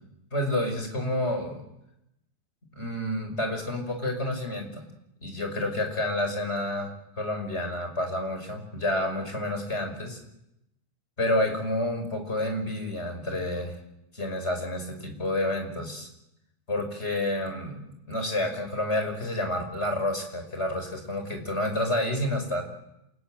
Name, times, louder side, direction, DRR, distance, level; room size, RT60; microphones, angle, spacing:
voice 1, 0.3-1.6 2.8-4.8 5.2-10.2 11.2-13.8 14.1-16.1 16.7-17.8 18.1-22.6, left 1 dB, 15° left, 4 dB, 5.5 m, -29 dB
28.0 x 21.0 x 9.1 m, 0.86 s
omnidirectional pair, 4.9 m